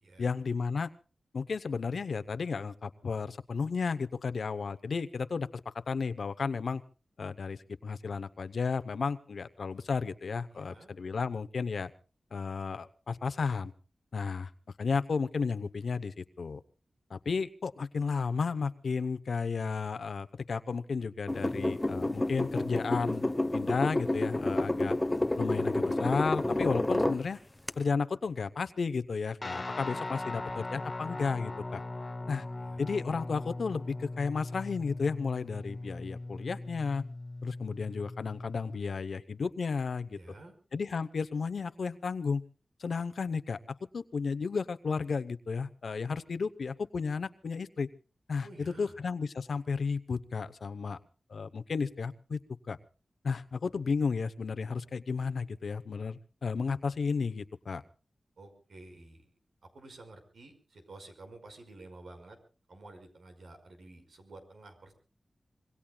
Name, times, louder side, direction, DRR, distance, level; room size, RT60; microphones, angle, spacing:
voice 1, 0.2-0.9 1.3-6.8 7.2-11.9 12.3-13.7 14.1-14.5 14.8-16.6 17.1-25.0 25.4-27.4 27.8-31.8 32.3-32.4 32.8-37.0 37.4-40.2 40.7-42.4 42.8-47.9 48.3-51.0 51.3-52.4 52.7-52.8 53.2-57.8, left 5 dB, 80° left, 11 dB, 0.8 m, -33 dB
voice 2, 10.5-10.9 32.2-32.3 32.6-32.9 40.1-40.5 48.4-49.0 58.4-59.3 59.7-62.4 62.7-64.9, right 2 dB, 85° right, 6 dB, 5.3 m, -51 dB
sound 1, 21.3-27.2 27.7-27.8, left 1 dB, 15° left, 1.0 m, -29 dB
Guitar, 29.4-38.8, left 2 dB, 35° left, 2.0 m, -39 dB
26.0 x 22.0 x 2.3 m, 0.37 s
wide cardioid pair, 85°, 0 cm